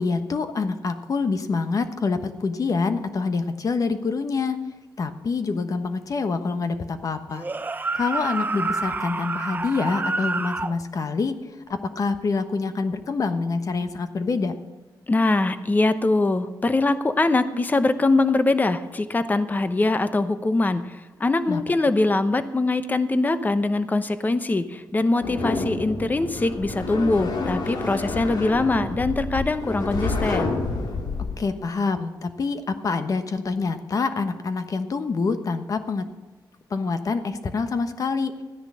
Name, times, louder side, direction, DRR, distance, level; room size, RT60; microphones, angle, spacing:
voice 1, 0.0-4.6 5.0-7.4 7.9-11.4 11.7-14.5 21.5-21.6 31.4-36.1 36.7-38.3, left 4 dB, 50° left, 9 dB, 1.2 m, -26 dB
sound 1, 7.3-10.8, right 3 dB, 25° right, 0.6 m, -28 dB
voice 2, 15.1-30.5, left 2 dB, 20° left, 11 dB, 0.9 m, -22 dB
sound 2, 25.2-31.4, left 3 dB, 65° left, 2.0 m, -29 dB
14.0 x 10.0 x 6.3 m, 1.2 s
cardioid pair, 105°, 8 cm